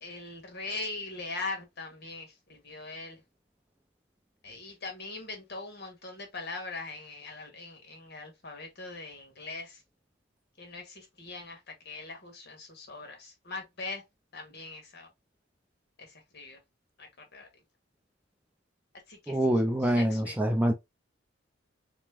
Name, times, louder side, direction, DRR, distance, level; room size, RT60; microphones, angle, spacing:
voice 1, 0.0-3.2 4.4-9.8 10.6-14.0 14.3-15.1 16.0-16.6 17.0-17.5 19.1-19.4 19.8-20.4, left 3 dB, 55° left, 1.4 m, -41 dB
voice 2, 19.3-20.7, right 1 dB, 5° right, 0.4 m, -25 dB
3.2 x 3.1 x 3.4 m
head